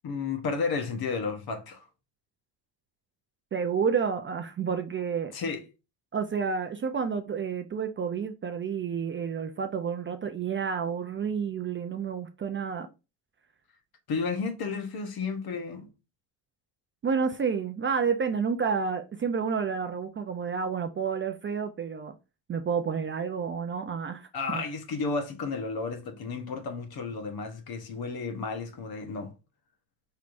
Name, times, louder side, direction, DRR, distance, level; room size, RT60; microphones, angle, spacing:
voice 1, 0.0-1.9 5.3-5.6 14.1-15.9 24.3-29.3, left 4 dB, 50° left, 1.1 m, -32 dB
voice 2, 3.5-5.3 6.1-12.9 17.0-22.1 22.5-24.6, right 6 dB, 25° right, 0.4 m, -30 dB
4.7 x 3.3 x 2.5 m
cardioid pair, 95°, 46 cm